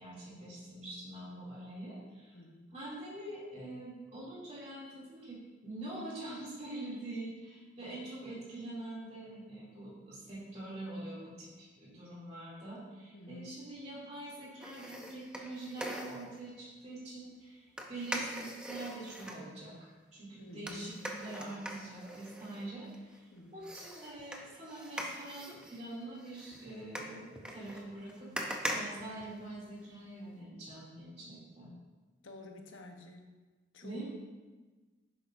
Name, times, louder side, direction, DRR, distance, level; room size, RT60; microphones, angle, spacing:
voice 1, 0.0-2.4 2.7-23.3 23.5-31.7 33.8-34.1, right 1 dB, 35° right, -6 dB, 2.7 m, -45 dB
voice 2, 2.3-2.7 13.1-13.6 20.4-20.9 23.3-23.6 32.2-33.3 33.7-34.0, left 1 dB, 80° left, 3 dB, 1.0 m, -50 dB
sound 1, 14.6-16.4 17.8-19.4 20.7-23.2 23.6-29.9 30.2-30.3, equal, 5° right, 0.6 m, -42 dB
10.0 x 7.7 x 2.6 m, 1.3 s
head